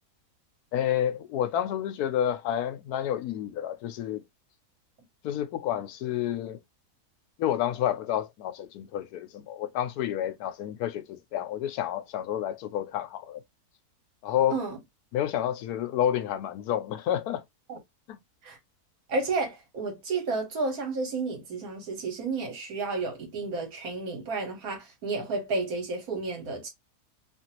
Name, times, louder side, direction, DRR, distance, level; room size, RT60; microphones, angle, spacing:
voice 1, 0.7-4.2 5.2-6.6 7.4-13.4 14.2-14.6 15.1-17.4 18.1-18.2, left 10 dB, 80° left, 1.1 m, -29 dB
voice 2, 19.1-26.7, right 3 dB, 70° right, 1.5 m, -31 dB
2.9 x 2.6 x 2.8 m
omnidirectional pair, 1.6 m